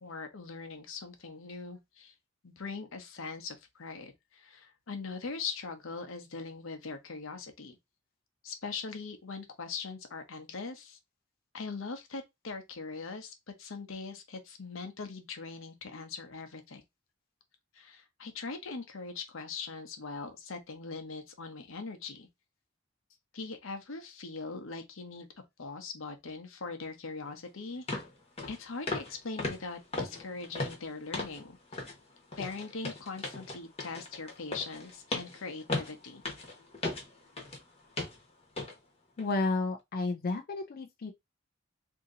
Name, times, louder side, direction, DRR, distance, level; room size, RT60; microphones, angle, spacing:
voice 1, 0.0-2.1 2.4-7.8 8.4-11.0 11.5-16.8 17.7-22.3 23.3-25.3 25.6-27.8 28.5-31.6 32.4-36.2, left 4 dB, 85° left, 0.8 m, -41 dB
sound 1, 27.3-27.4 27.9-28.1 28.4-28.6 28.9-29.1 29.4-31.4 31.7-32.0 32.3-37.6 38.0-38.2 38.6-38.7 39.2-39.3, left 2 dB, 30° left, 1.1 m, -37 dB
voice 2, 39.2-41.1, left 3 dB, 50° left, 0.4 m, -32 dB
2.9 x 2.7 x 3.7 m
head